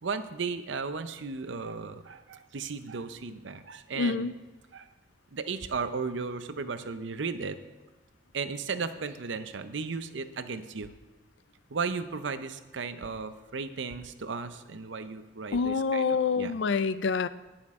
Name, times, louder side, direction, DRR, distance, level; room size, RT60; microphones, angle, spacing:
voice 1, 0.0-4.3 4.7-4.9 5.3-7.6 8.3-10.9 11.7-16.5, right 4 dB, 70° right, 11 dB, 0.7 m, -35 dB
voice 2, 4.0-4.3 15.5-17.3, left 5 dB, 65° left, 15 dB, 0.4 m, -27 dB
18.5 x 6.3 x 3.6 m, 1.2 s
head